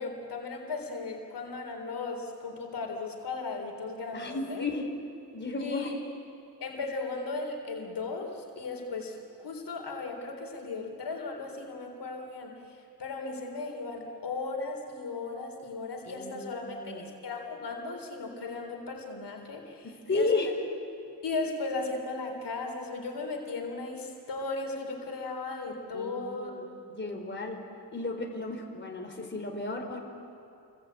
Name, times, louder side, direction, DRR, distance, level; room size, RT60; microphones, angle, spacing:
voice 1, 0.0-4.7 5.6-6.0 6.6-20.5 21.2-26.6, left 3 dB, 80° left, 2 dB, 3.7 m, -36 dB
voice 2, 4.1-4.8 5.3-5.9 16.1-17.0 19.8-20.5 25.9-27.6 27.9-30.0, left 3 dB, 30° left, 2 dB, 4.1 m, -33 dB
29.0 x 23.0 x 8.7 m, 2.6 s
wide cardioid pair, 100°, 40 cm